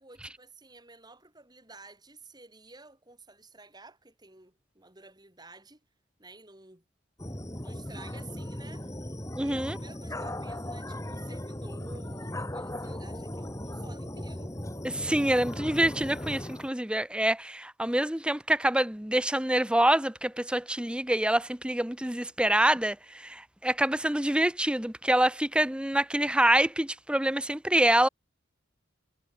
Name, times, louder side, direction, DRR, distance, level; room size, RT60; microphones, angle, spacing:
voice 1, 0.0-5.8 6.2-6.8 7.6-8.9 9.4-14.6, right 2 dB, 20° right, 7.7 m, -52 dB
sound 1, 7.2-16.7, left 1 dB, 15° left, 2.7 m, -37 dB
voice 2, 9.4-9.8 15.0-28.1, right 1 dB, 5° right, 0.8 m, -26 dB
head